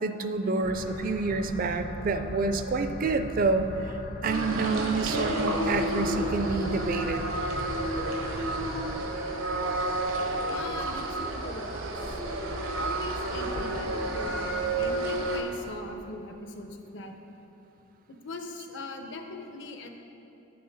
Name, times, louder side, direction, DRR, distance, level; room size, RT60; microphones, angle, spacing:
voice 1, 0.0-7.2 8.4-8.5, right 3 dB, 45° right, 8 dB, 0.4 m, -28 dB
sound 1, 0.6-9.0, left 1 dB, 40° left, 0.4 m, -40 dB
sound 2, 4.2-15.4, right 2 dB, 85° right, 1.0 m, -30 dB
voice 2, 10.4-12.2 12.8-17.1 18.1-19.9, left 2 dB, 65° left, 5 dB, 0.8 m, -41 dB
9.6 x 7.7 x 4.0 m, 3.0 s
head